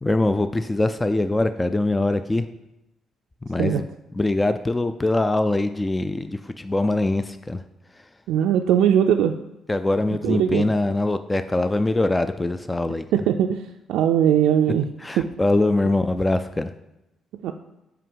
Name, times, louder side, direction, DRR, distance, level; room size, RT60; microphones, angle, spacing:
voice 1, 0.0-2.5 3.5-3.9 4.1-7.6 7.9-8.1 9.7-13.1 15.0-16.7, left 2 dB, 15° left, 10 dB, 0.3 m, -23 dB
voice 2, 8.3-9.4 10.2-10.7 13.1-13.6 13.9-14.9 15.2-15.3 17.4-17.5, right 9 dB, 85° right, 4 dB, 0.3 m, -20 dB
5.6 x 5.0 x 5.4 m, 0.93 s
cardioid pair, 90°, 0 cm